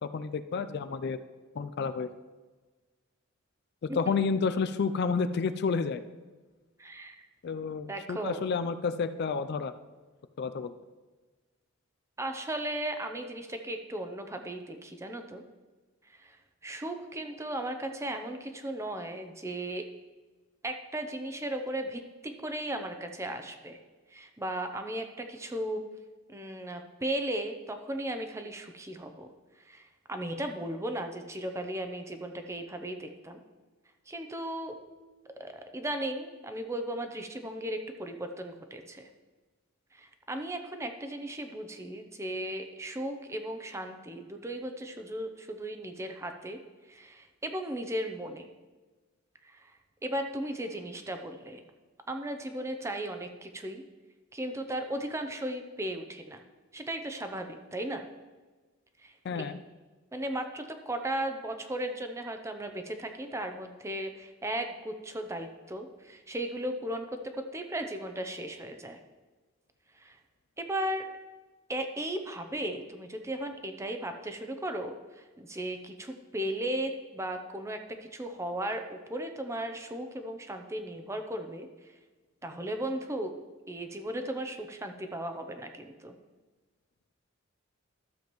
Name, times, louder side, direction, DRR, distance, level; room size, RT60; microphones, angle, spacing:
voice 1, 0.0-1.2 1.6-2.1 3.8-6.0 7.4-9.7 10.4-10.7 59.2-59.6, left 5 dB, 55° left, 10 dB, 0.4 m, -30 dB
voice 2, 6.8-7.3 7.9-8.4 12.2-15.4 16.0-16.4 16.6-19.9 20.6-23.8 24.1-25.8 26.3-33.4 34.1-34.8 35.4-39.1 39.9-46.6 46.9-48.5 49.4-49.7 50.0-51.6 52.1-53.8 54.3-56.4 56.7-58.0 59.0-59.5 60.1-69.0 69.9-70.2 70.6-71.0 71.7-81.7 82.4-83.4 83.7-86.1, right 1 dB, 15° right, 6 dB, 0.7 m, -36 dB
13.0 x 7.1 x 3.1 m, 1.3 s
head